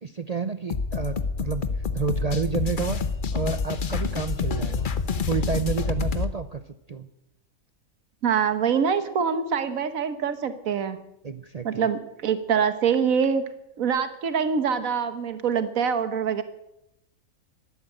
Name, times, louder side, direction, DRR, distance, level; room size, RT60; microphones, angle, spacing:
voice 1, 0.0-1.7 1.9-3.0 3.3-4.9 5.2-6.6 6.9-7.1 11.2-11.9, right 5 dB, 45° right, 11 dB, 0.5 m, -30 dB
sound 1, 0.7-6.3, left 5 dB, 45° left, 0.9 m, -27 dB
voice 2, 8.2-11.0 11.6-13.4 13.8-16.4, right 7 dB, 80° right, 11 dB, 1.6 m, -24 dB
13.0 x 12.0 x 8.7 m, 0.84 s
omnidirectional pair, 1.4 m